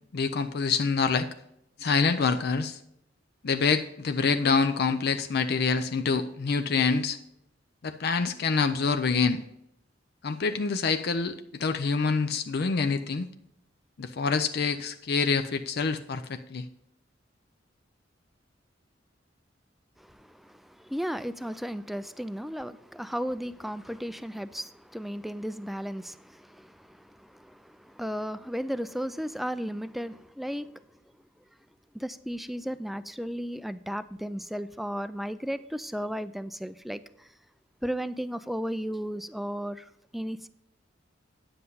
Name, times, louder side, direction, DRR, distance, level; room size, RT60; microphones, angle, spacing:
voice 1, 0.1-1.3 1.8-2.8 3.4-7.2 7.8-9.4 10.2-13.3 14.0-16.7, left 5 dB, 60° left, 0.5 m, -26 dB
voice 2, 20.0-30.7 31.9-37.3 37.8-39.8 40.1-40.5, equal, ahead, 0.3 m, -35 dB
9.6 x 7.7 x 3.9 m
head